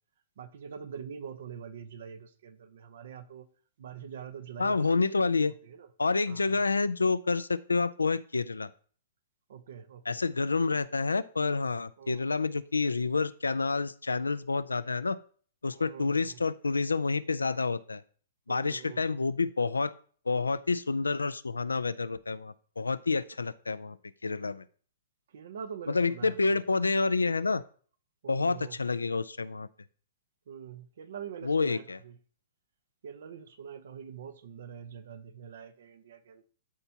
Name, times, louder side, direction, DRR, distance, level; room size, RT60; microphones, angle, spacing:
voice 1, 0.4-3.5 3.8-5.9 6.3-6.8 9.5-10.2 12.0-12.2 15.7-16.4 18.5-19.2 25.3-26.6 28.2-28.8 30.5-32.2 33.0-36.4, right 7 dB, 65° right, 0.8 m, -45 dB
voice 2, 4.6-5.5 6.0-8.7 10.1-15.2 15.6-18.0 18.5-19.9 20.3-24.0 24.2-24.6 25.9-27.6 28.3-29.7 31.4-32.0, left 4 dB, 85° left, 0.4 m, -28 dB
12.0 x 4.4 x 2.8 m
hypercardioid pair, 115°, 0 cm